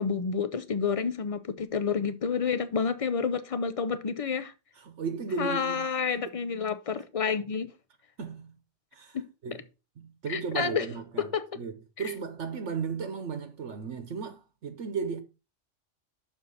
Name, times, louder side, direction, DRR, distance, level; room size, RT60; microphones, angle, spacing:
voice 1, 0.0-4.5 5.4-7.7 9.1-9.2 10.3-10.9 11.2-11.6 12.0-12.1, left 6 dB, 45° left, 0.5 m, -29 dB
voice 2, 4.8-5.8 8.2-8.6 8.9-9.2 9.4-9.6 10.0-11.3 11.6-15.2, right 5 dB, 75° right, 1.2 m, -35 dB
6.5 x 4.5 x 5.4 m
omnidirectional pair, 1.2 m